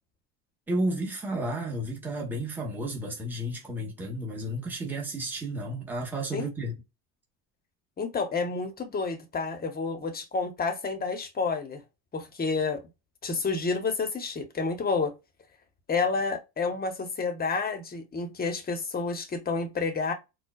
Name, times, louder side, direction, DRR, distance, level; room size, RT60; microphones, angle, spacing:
voice 1, 0.7-6.7, right 1 dB, 5° right, 1.1 m, -32 dB
voice 2, 8.0-11.8 12.1-12.8 13.2-15.1 15.9-20.1, left 4 dB, 20° left, 0.9 m, -29 dB
4.4 x 2.3 x 2.3 m
supercardioid pair, 120°, 43 cm